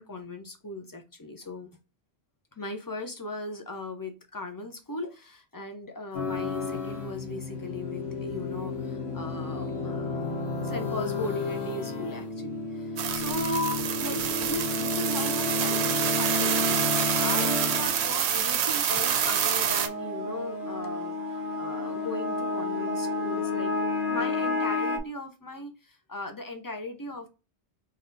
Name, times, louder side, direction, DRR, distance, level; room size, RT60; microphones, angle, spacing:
voice 1, 0.0-1.7 2.6-10.3 10.6-23.7 24.1-27.3, left 1 dB, 25° left, 0.6 m, -37 dB
sound 1, 6.1-25.0, left 3 dB, 75° left, 1.1 m, -31 dB
sound 2, 13.0-19.9, right 9 dB, 85° right, 0.9 m, -27 dB
4.2 x 2.4 x 3.9 m
omnidirectional pair, 1.1 m